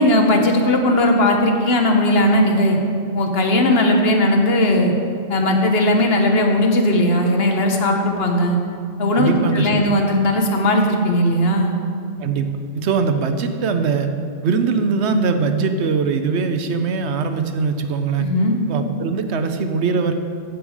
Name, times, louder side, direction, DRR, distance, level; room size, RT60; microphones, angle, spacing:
voice 1, 0.0-2.8 3.1-4.9 5.3-8.6 9.0-11.7 18.2-18.6, left 1 dB, 60° left, 3 dB, 1.2 m, -17 dB
voice 2, 9.1-9.8 12.2-12.5 12.7-14.1 14.4-18.3 18.7-20.1, right 5 dB, 80° right, 8 dB, 1.0 m, -21 dB
14.0 x 5.4 x 4.8 m, 2.3 s
omnidirectional pair, 1.1 m